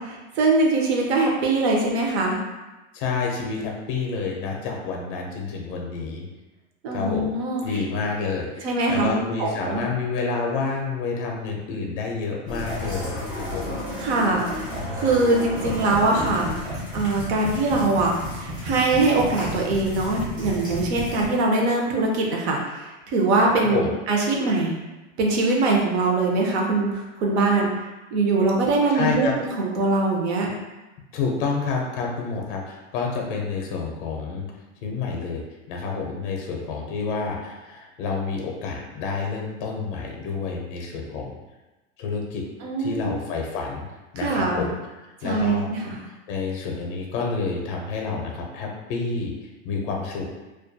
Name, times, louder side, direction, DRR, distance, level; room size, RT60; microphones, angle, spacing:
voice 1, 0.0-2.4 6.8-7.8 8.6-9.9 14.0-14.7 14.9-24.7 25.2-27.7 28.1-30.5 42.6-43.1 44.2-44.7 45.2-46.0, right 2 dB, 65° right, 0 dB, 0.7 m, -22 dB
voice 2, 2.9-6.3 6.9-7.3 7.6-13.7 23.7-23.9 28.9-29.4 31.1-34.5 34.8-35.4 35.7-41.4 42.0-42.4 42.8-43.9 44.1-44.7 45.2-45.7 46.3-49.3 49.6-50.3, left 4 dB, 45° left, 0 dB, 0.5 m, -29 dB
sound 1, 12.5-21.3, left 1 dB, 10° right, 0.4 m, -32 dB
2.3 x 2.1 x 2.6 m, 1.1 s
supercardioid pair, 165°, 37 cm